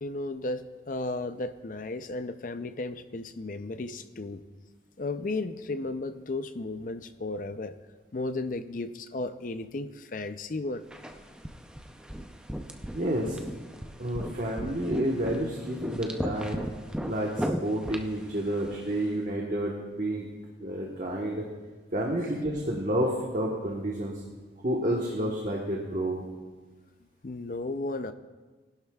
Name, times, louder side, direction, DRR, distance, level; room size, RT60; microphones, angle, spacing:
voice 1, 0.0-4.4 5.0-7.8 8.1-10.8 27.2-28.1, left 2 dB, 50° left, 10 dB, 0.5 m, -34 dB
sound 1, 10.9-19.1, equal, 5° right, 0.5 m, -37 dB
voice 2, 12.9-13.4 14.0-16.6 17.0-20.2 20.6-21.4 21.9-24.1 24.6-26.2, right 1 dB, 45° right, -2 dB, 1.2 m, -30 dB
19.0 x 11.5 x 2.3 m, 1.3 s
head